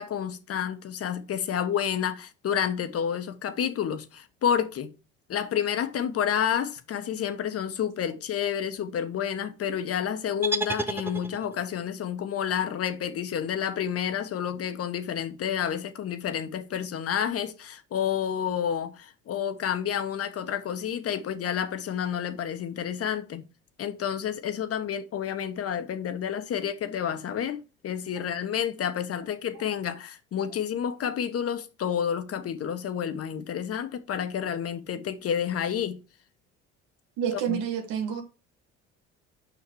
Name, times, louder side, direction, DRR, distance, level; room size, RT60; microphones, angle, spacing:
voice 1, 0.0-4.9 5.3-23.4 23.8-36.0 37.3-37.6, left 8 dB, 50° left, 1.2 m, -30 dB
sound 1, 10.4-11.7, right 2 dB, 10° right, 0.7 m, -31 dB
voice 2, 37.2-38.2, right 9 dB, 85° right, 1.8 m, -29 dB
7.0 x 5.7 x 4.6 m
supercardioid pair, 75°, 30 cm